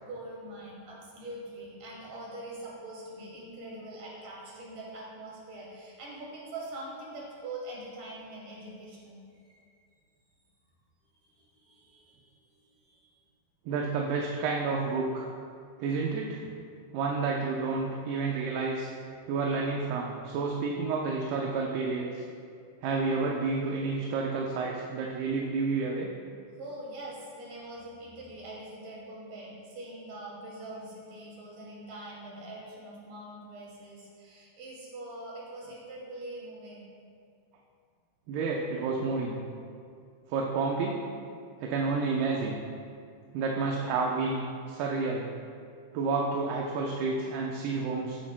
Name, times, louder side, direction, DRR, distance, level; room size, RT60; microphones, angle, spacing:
voice 1, 0.0-9.6 11.3-13.2 26.6-36.9, right 1 dB, 55° right, -5 dB, 3.8 m, -43 dB
voice 2, 13.7-15.3 15.8-16.4 16.9-18.9 19.3-22.2 22.8-26.1 38.3-39.4 40.3-41.0 41.6-42.6 43.3-45.3 45.9-48.2, right 4 dB, 80° right, -1 dB, 2.6 m, -30 dB
15.0 x 10.5 x 2.2 m, 2.3 s
omnidirectional pair, 4.7 m